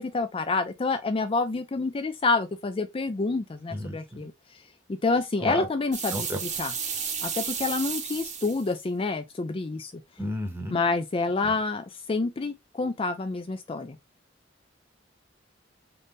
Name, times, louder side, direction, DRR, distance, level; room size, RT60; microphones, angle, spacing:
voice 1, 0.0-4.3 5.0-6.3 6.6-6.7 7.2-9.9 10.7-14.0, left 3 dB, 30° left, 0.4 m, -28 dB
voice 2, 3.7-4.3 5.4-5.7 6.1-6.4 10.2-10.8 11.4-11.5, equal, 10° right, 0.9 m, -33 dB
sound 1, 5.9-8.7, right 6 dB, 40° right, 0.9 m, -32 dB
3.8 x 2.7 x 3.6 m
head